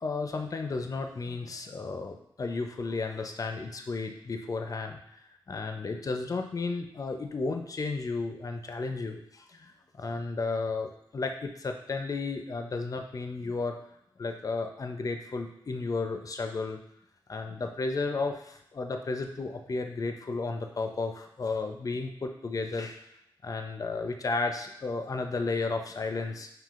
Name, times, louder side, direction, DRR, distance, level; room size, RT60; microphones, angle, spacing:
voice 1, 0.0-5.0 5.5-13.8 14.2-16.8 17.3-23.0 23.4-26.5, left 3 dB, 40° left, 5 dB, 0.5 m, -33 dB
5.6 x 2.8 x 2.5 m, 0.80 s
cardioid pair, 60°, 9 cm